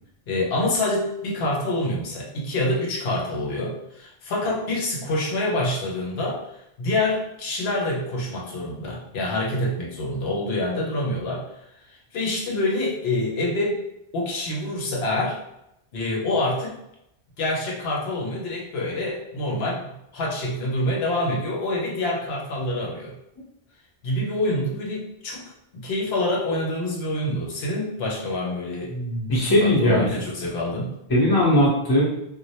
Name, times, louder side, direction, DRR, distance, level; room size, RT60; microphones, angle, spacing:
voice 1, 0.3-11.5 11.9-13.8 14.1-15.4 15.9-16.8 17.4-23.1 24.0-28.9 29.4-30.9, left 1 dB, 75° left, -2 dB, 0.8 m, -26 dB
voice 2, 28.9-30.1 31.1-32.0, left 1 dB, 25° left, -5 dB, 0.6 m, -19 dB
2.2 x 2.0 x 2.8 m, 0.81 s
omnidirectional pair, 1.1 m